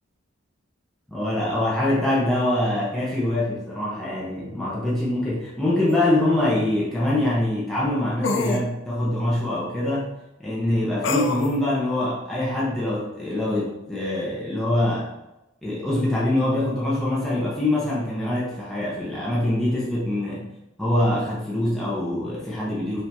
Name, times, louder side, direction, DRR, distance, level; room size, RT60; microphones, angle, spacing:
voice 1, 1.1-10.1 10.4-15.1 15.6-20.5 20.8-23.0, left 1 dB, ahead, -7 dB, 0.9 m, -24 dB
sound 1, 5.9-6.0 8.2-8.7 11.0-11.6, left 3 dB, 65° left, 0.4 m, -25 dB
5.4 x 2.8 x 3.5 m, 0.93 s
head